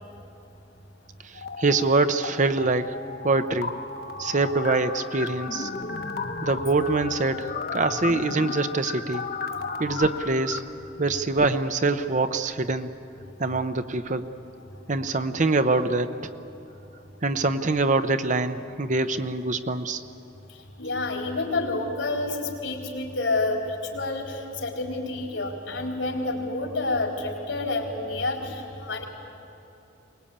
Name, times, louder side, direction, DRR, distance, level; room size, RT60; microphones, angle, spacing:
sound 1, 1.3-2.3 2.6-10.6, left 4 dB, 55° left, 1.2 m, -34 dB
voice 1, 1.6-3.0 3.2-3.7 4.2-5.7 6.4-9.3 9.8-10.6 11.0-12.9 13.4-14.3 14.9-16.3 17.2-20.0, right 3 dB, 40° right, 10 dB, 0.8 m, -24 dB
voice 2, 20.8-29.0, left 2 dB, 85° left, 0 dB, 4.1 m, -29 dB
23.5 x 20.5 x 8.7 m, 2.9 s
head